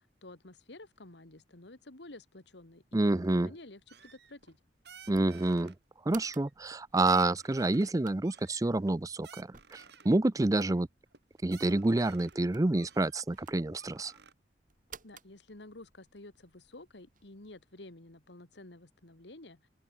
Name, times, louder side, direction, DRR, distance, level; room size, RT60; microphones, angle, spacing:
voice 1, 0.2-4.6 15.0-19.7, left 2 dB, 70° left, 2.1 m, -51 dB
voice 2, 2.9-3.5 5.1-5.7 6.1-10.9 11.4-14.1, right 2 dB, 20° right, 0.5 m, -28 dB
sound 1, 3.7-17.6, right 7 dB, 50° right, 7.9 m, -58 dB
sound 2, 3.9-4.6 4.8-5.8 6.2-6.8 7.0-7.9 8.2-10.2 10.5-10.8 11.1-11.2 11.4-12.4 12.7-14.3, right 7 dB, 65° right, 3.9 m, -55 dB
head